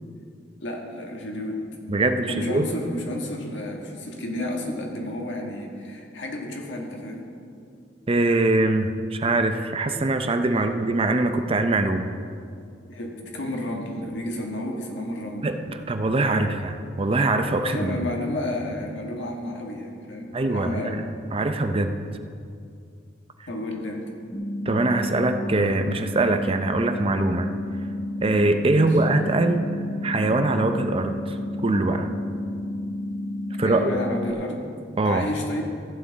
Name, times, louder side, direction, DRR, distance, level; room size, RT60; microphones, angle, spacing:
voice 1, 0.6-1.8 2.3-7.3 10.5-10.7 12.9-15.5 16.3-16.5 17.6-21.0 23.5-24.1 28.7-29.0 33.6-34.6 35.0-35.6, left 1 dB, 75° left, 1 dB, 1.6 m, -31 dB
voice 2, 1.9-2.6 8.1-12.1 15.4-18.0 20.3-21.0 21.3-21.9 24.7-27.5 28.2-29.7 30.0-31.4 31.6-32.1 33.6-33.9 35.0-35.3, right 2 dB, 30° right, 7 dB, 0.5 m, -23 dB
sound 1, 24.3-34.3, left 1 dB, 25° left, 0.8 m, -31 dB
14.5 x 8.8 x 4.0 m, 2.3 s
head